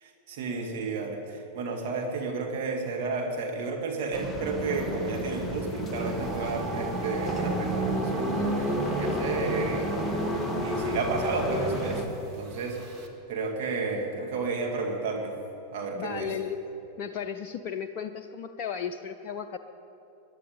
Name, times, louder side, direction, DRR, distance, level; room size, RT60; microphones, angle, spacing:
voice 1, 0.0-10.0 10.6-12.1 12.4-12.8 13.3-15.3 15.7-16.3, right 3 dB, 50° right, 1 dB, 2.0 m, -32 dB
sound 1, 4.1-12.1, equal, 5° left, 1.7 m, -31 dB
sound 2, 5.9-13.1, right 3 dB, 25° right, 2.0 m, -39 dB
voice 2, 15.9-16.6 17.0-19.6, left 7 dB, 40° left, 5 dB, 0.6 m, -35 dB
23.0 x 11.0 x 5.1 m, 2.9 s
figure-of-eight pair, 90°, 0 cm